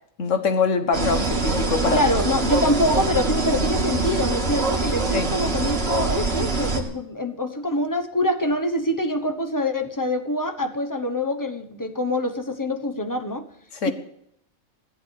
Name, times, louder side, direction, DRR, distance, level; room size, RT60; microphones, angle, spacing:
voice 1, 0.2-2.0 5.1-5.3 13.7-13.9, left 5 dB, 65° left, 7 dB, 1.6 m, -23 dB
sound 1, 0.9-6.8, right 3 dB, 45° right, 2.2 m, -24 dB
voice 2, 1.9-13.5 13.8-13.9, left 1 dB, 15° left, 7 dB, 1.0 m, -25 dB
15.0 x 10.5 x 6.5 m, 0.73 s
omnidirectional pair, 1.4 m